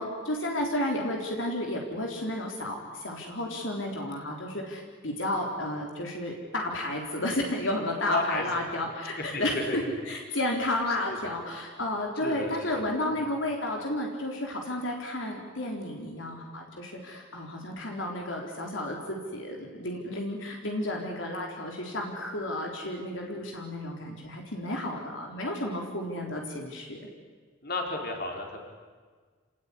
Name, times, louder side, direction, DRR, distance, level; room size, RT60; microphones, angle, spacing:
voice 1, 0.0-27.1, left 1 dB, 70° left, 1 dB, 3.9 m, -32 dB
voice 2, 8.1-8.5 9.3-9.8 10.9-11.3 12.2-12.9 27.6-28.6, left 2 dB, 50° left, 2 dB, 4.4 m, -33 dB
27.5 x 19.0 x 9.8 m, 1.5 s
head